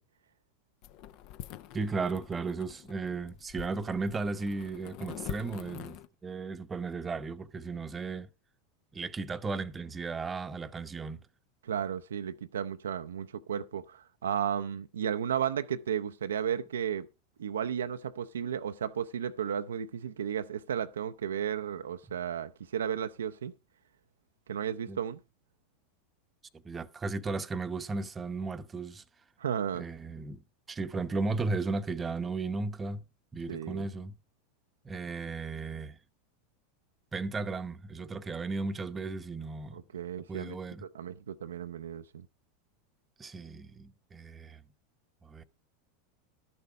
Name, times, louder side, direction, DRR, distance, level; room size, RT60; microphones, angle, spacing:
sound 1, 0.8-6.1, left 12 dB, 50° left, 0.7 m, -45 dB
voice 1, 1.7-8.3 8.9-11.2 24.9-25.0 26.5-29.0 29.7-30.4 30.7-33.0 33.3-34.1 34.8-36.0 37.1-39.8 40.3-40.8 43.2-44.6 45.2-45.4, right 3 dB, 20° right, 0.8 m, -35 dB
voice 2, 11.6-17.1 17.4-23.5 24.5-25.2 29.4-29.8 33.5-33.9 39.7-42.3, right 8 dB, 75° right, 0.5 m, -34 dB
12.5 x 6.9 x 4.7 m
hypercardioid pair, 90°, 0 cm